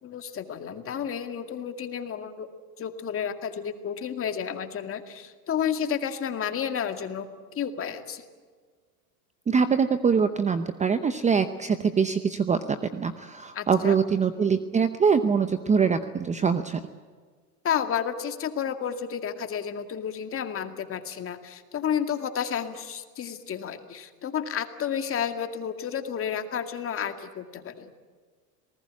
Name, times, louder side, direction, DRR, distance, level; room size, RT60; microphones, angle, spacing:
voice 1, 0.0-2.5 2.8-7.3 7.5-8.2 13.5-14.0 17.6-27.9, left 8 dB, 30° left, 7 dB, 2.2 m, -31 dB
voice 2, 9.5-16.8, right 6 dB, 15° right, 10 dB, 0.8 m, -24 dB
27.0 x 19.5 x 8.5 m, 1.5 s
supercardioid pair, 130°, 47 cm